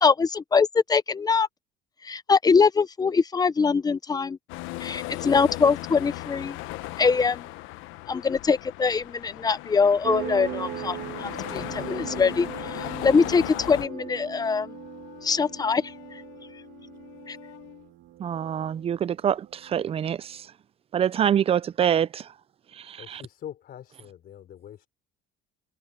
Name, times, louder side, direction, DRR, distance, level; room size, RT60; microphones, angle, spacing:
voice 1, 0.0-1.5 2.0-4.4 4.8-6.6 7.0-7.5 8.1-14.7 15.2-15.9 17.3-17.4, left 5 dB, 20° left, 0.8 m, -23 dB
sound 1, 4.5-13.9, left 18 dB, 70° left, 1.1 m, -37 dB
sound 2, 10.0-20.4, right 14 dB, 60° right, 2.9 m, -40 dB
Wind instrument woodwind instrument, 12.8-17.9, left 24 dB, 85° left, 5.9 m, -48 dB
voice 2, 18.2-20.5 20.9-22.3 22.7-23.2, right 9 dB, 25° right, 0.5 m, -25 dB
voice 3, 23.0-24.9, left 10 dB, 45° left, 4.5 m, -43 dB
cardioid pair, 130°, 21 cm